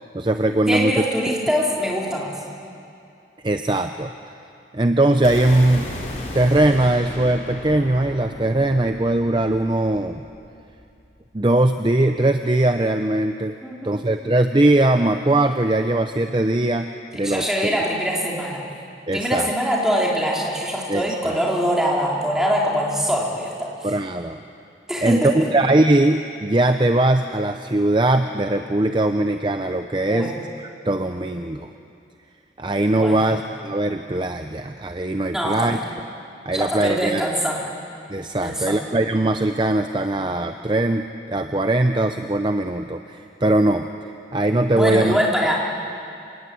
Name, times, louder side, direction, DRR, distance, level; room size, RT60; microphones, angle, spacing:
voice 1, 0.1-0.9 3.4-4.1 4.7-5.9 6.3-10.2 11.3-13.6 13.8-17.5 19.1-19.5 20.9-21.4 23.8-24.4 25.0-31.7 32.6-35.8 36.5-37.3 38.1-45.2, right 1 dB, 25° right, 7 dB, 0.6 m, -20 dB
voice 2, 0.7-2.3 13.6-14.0 17.2-18.6 19.1-23.9 24.9-25.5 30.1-30.3 32.9-33.3 35.3-35.8 36.5-37.6 38.4-38.8 44.7-45.6, equal, 5° right, -4 dB, 3.7 m, -23 dB
sound 1, 5.2-11.3, left 1 dB, 45° left, 4.2 m, -35 dB
26.5 x 19.0 x 8.5 m, 2.5 s
head